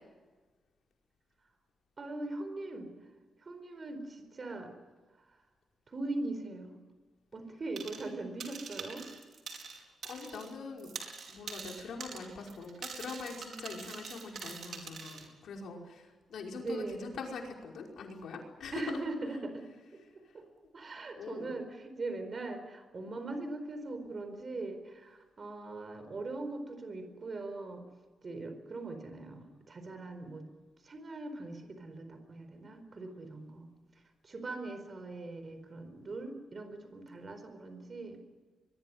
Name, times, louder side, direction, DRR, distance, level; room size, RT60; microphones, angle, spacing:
voice 1, 2.0-3.0 3.4-4.7 5.3-5.4 5.9-6.8 7.3-9.0 16.6-17.1 18.7-19.7 19.9-20.0 20.3-20.4 20.7-27.8 28.2-30.4 30.8-33.7 34.2-38.2, right 2 dB, 35° right, 8 dB, 4.4 m, -41 dB
sound 1, 7.8-8.1 8.4-10.5 10.8-15.3, right 5 dB, 60° right, 4.7 m, -44 dB
voice 2, 10.0-10.9 11.3-19.0 21.1-21.6, left 4 dB, 75° left, 1 dB, 5.4 m, -43 dB
23.5 x 22.0 x 9.0 m, 1.4 s
wide cardioid pair, 135°, 0 cm